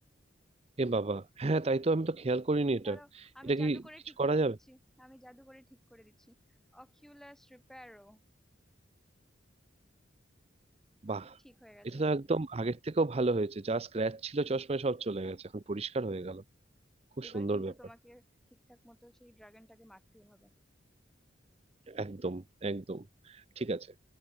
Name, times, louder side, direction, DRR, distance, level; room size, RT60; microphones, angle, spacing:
voice 1, 0.8-3.8 4.2-4.6 11.0-11.4 11.8-16.4 17.2-17.7 21.9-23.9, right 2 dB, 30° right, 0.6 m, -32 dB
voice 2, 2.7-3.1 3.3-6.3 6.7-8.2 11.4-12.1 17.2-18.2 18.5-20.5, equal, ahead, 6.2 m, -55 dB
head